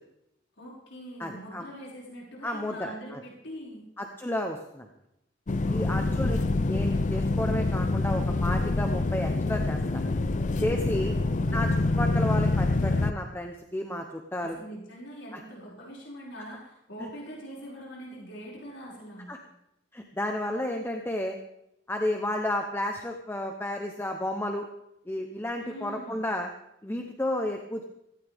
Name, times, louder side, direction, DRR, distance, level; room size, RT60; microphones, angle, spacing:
voice 1, 0.6-3.8 5.6-6.4 11.1-11.7 14.4-19.3 25.6-26.2, equal, 85° left, -5 dB, 5.9 m, -43 dB
voice 2, 1.2-1.7 2.4-3.2 4.0-4.9 5.7-6.4 6.7-10.0 10.6-11.1 11.5-14.6 15.3-15.4 17.0-17.1 19.3-19.4 19.9-21.4 21.9-24.7 25.1-26.5 26.8-27.8, left 1 dB, 10° left, 4 dB, 0.9 m, -32 dB
sound 1, 5.5-13.1, left 2 dB, 40° left, 0.6 m, -26 dB
17.5 x 16.0 x 3.6 m, 0.84 s
head